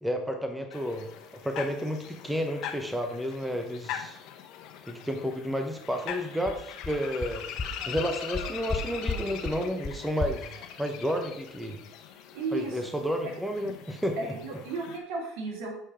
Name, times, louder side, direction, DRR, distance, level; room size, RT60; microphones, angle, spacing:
voice 1, 0.0-1.1 1.4-4.2 4.9-7.4 7.9-11.8 12.5-14.3, equal, 5° right, 5 dB, 1.0 m, -31 dB
sound 1, 0.7-15.0, left 9 dB, 65° left, 0.9 m, -42 dB
sound 2, 6.1-6.2 6.5-6.6 6.8-6.9 7.2-7.3 7.6-7.7 8.0-8.1 8.3-8.8 9.1-9.2 9.4-9.5 9.8-9.9 10.2-10.3, left 5 dB, 30° left, 0.8 m, -31 dB
voice 2, 12.3-12.9 14.2-15.7, right 3 dB, 75° right, 0 dB, 2.4 m, -34 dB
7.5 x 4.5 x 5.0 m, 0.70 s
supercardioid pair, 85°, 0 cm